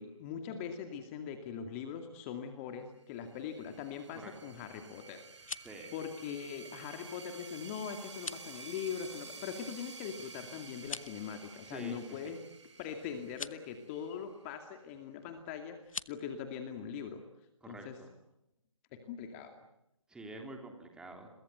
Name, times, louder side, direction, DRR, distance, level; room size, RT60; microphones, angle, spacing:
voice 1, 0.0-12.4 12.8-17.2 17.7-18.0 18.9-19.6, left 7 dB, 25° left, 6 dB, 2.4 m, -42 dB
sound 1, 3.2-14.5, right 4 dB, 60° right, 5.9 m, -51 dB
sound 2, 5.2-5.8 8.1-8.5 10.8-11.2 13.2-13.6 15.8-16.1, left 4 dB, 80° left, 1.0 m, -43 dB
voice 2, 5.6-6.0 11.6-12.0 12.2-12.3 17.6-18.1 20.1-21.3, right 2 dB, 5° right, 3 dB, 3.4 m, -47 dB
30.0 x 23.0 x 8.0 m, 0.83 s
figure-of-eight pair, 145°, 17 cm